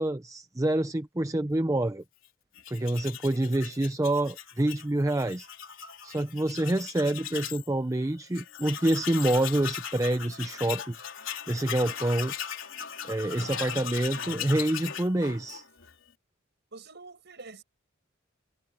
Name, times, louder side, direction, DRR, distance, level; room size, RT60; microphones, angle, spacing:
voice 1, 0.0-2.0 2.7-5.5 6.0-11.0 11.5-12.3 13.0-15.6, right 1 dB, 15° right, 0.6 m, -27 dB
Tools, 2.5-7.7 8.0-8.1 8.3-15.9, left 9 dB, 80° left, 3.7 m, -38 dB
voice 2, 3.3-3.9 13.3-14.6 16.7-17.6, right 2 dB, 60° right, 6.7 m, -47 dB
head